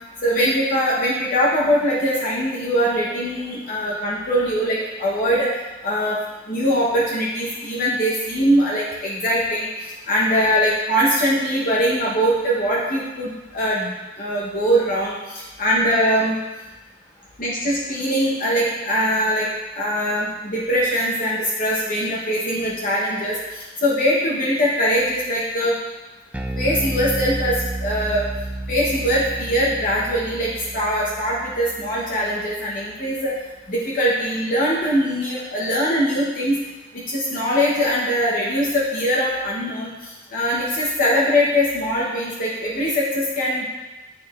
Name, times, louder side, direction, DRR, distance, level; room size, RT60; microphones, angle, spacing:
voice 1, 0.2-5.5 5.8-6.2 6.5-9.7 10.1-13.9 14.2-16.3 17.4-19.5 19.7-25.7 26.6-27.5 27.8-28.2 28.7-33.3 33.7-36.6 36.9-43.6, equal, 50° left, -5 dB, 0.9 m, -22 dB
Bass guitar, 26.3-32.8, right 1 dB, 5° right, 0.3 m, -31 dB
8.5 x 4.7 x 2.4 m, 1.1 s
head